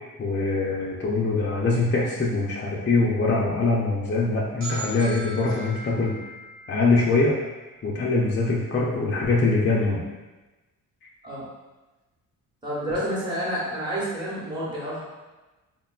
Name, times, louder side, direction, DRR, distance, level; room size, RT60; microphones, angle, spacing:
voice 1, 0.2-6.2 6.7-7.3 7.8-10.0, left 3 dB, 30° left, -4 dB, 0.5 m, -23 dB
sound 1, 4.6-8.3, right 1 dB, 35° right, 0.7 m, -40 dB
voice 2, 12.6-15.0, equal, 15° right, -8 dB, 1.0 m, -29 dB
3.6 x 2.2 x 2.3 m, 1.1 s
cardioid pair, 75°, 35 cm